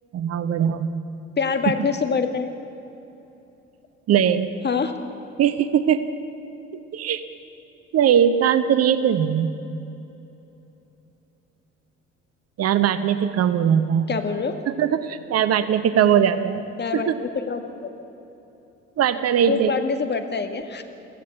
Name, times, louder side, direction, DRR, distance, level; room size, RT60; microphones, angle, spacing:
voice 1, 0.1-0.9 1.8-1.9 4.1-4.5 5.4-6.0 6.9-7.2 7.9-9.5 12.6-14.1 14.7-16.6 16.9-17.2 19.0-19.8, right 9 dB, 45° right, 12 dB, 1.0 m, -20 dB
voice 2, 1.4-2.5 4.6-4.9 14.1-14.6 16.8-17.7 19.4-20.8, left 5 dB, 30° left, 7 dB, 1.9 m, -25 dB
23.5 x 16.0 x 8.1 m, 3.0 s
figure-of-eight pair, 50°, 36 cm